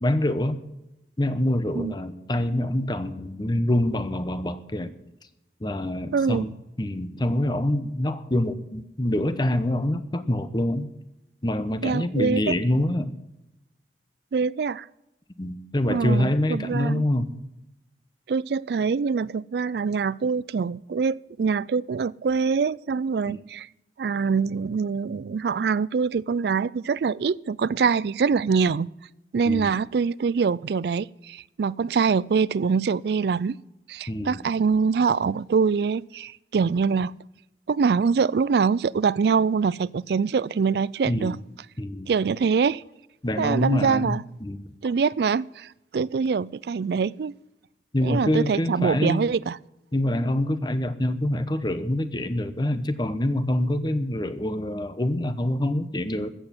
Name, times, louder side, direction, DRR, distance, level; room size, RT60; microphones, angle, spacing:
voice 1, 0.0-0.6 1.2-4.9 5.6-6.5 6.8-10.9 11.4-13.1 15.4-17.4 23.3-23.4 29.5-29.7 34.1-34.4 41.1-41.4 41.8-42.1 43.2-44.7 47.9-49.2 49.9-56.3, left 1 dB, 25° left, 12 dB, 0.9 m, -25 dB
voice 2, 6.1-6.5 11.8-12.5 14.3-14.9 15.9-17.1 18.3-23.7 24.0-28.9 29.3-33.6 33.9-37.1 37.7-41.4 42.1-42.8 43.4-44.2 44.8-47.4 48.0-49.6, right 5 dB, 60° right, 22 dB, 0.4 m, -24 dB
14.0 x 8.2 x 7.3 m, 0.90 s
head